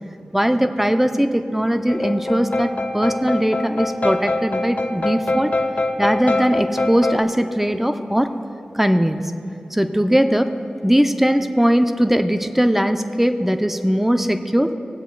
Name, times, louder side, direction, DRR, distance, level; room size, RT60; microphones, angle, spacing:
voice 1, 0.3-5.5 6.0-8.3 8.7-9.2 9.7-10.5 10.8-14.7, equal, 5° right, 8 dB, 0.6 m, -19 dB
sound 1, 1.9-7.2, left 2 dB, 50° left, 0.6 m, -24 dB
20.0 x 7.9 x 2.3 m, 2.8 s
cardioid pair, 40°, 3 cm